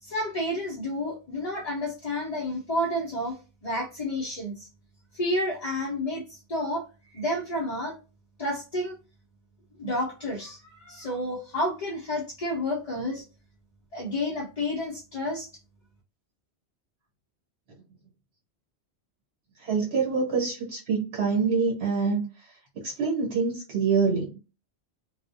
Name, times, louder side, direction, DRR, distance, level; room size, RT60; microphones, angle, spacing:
voice 1, 0.0-3.4 3.6-4.7 5.1-7.9 8.4-8.9 9.8-13.2 13.9-15.5, left 1 dB, 45° left, -4 dB, 0.6 m, -30 dB
voice 2, 19.6-22.3 22.7-24.4, right 5 dB, 75° right, -2 dB, 1.1 m, -26 dB
2.3 x 2.0 x 2.6 m, 0.33 s
omnidirectional pair, 1.1 m